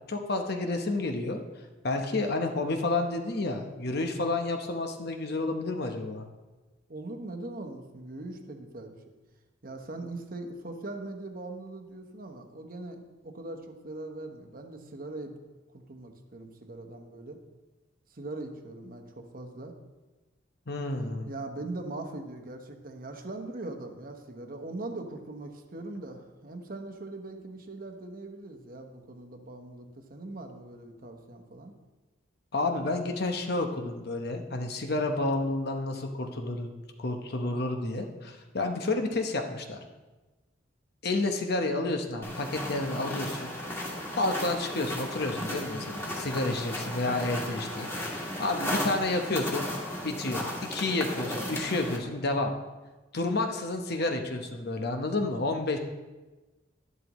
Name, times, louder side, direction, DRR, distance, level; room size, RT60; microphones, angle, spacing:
voice 1, 0.1-1.4 1.8-6.3 20.7-21.3 32.5-39.8 41.0-43.5 44.2-49.7 50.0-52.5 53.1-55.8, left 2 dB, 55° left, 4 dB, 0.9 m, -30 dB
voice 2, 6.9-8.9 9.6-15.4 15.7-17.4 18.1-19.7 21.3-31.7, right 2 dB, 45° right, 5 dB, 1.1 m, -41 dB
sound 1, 42.2-52.0, left 1 dB, 15° left, 1.7 m, -35 dB
11.5 x 11.0 x 3.1 m, 1.2 s
head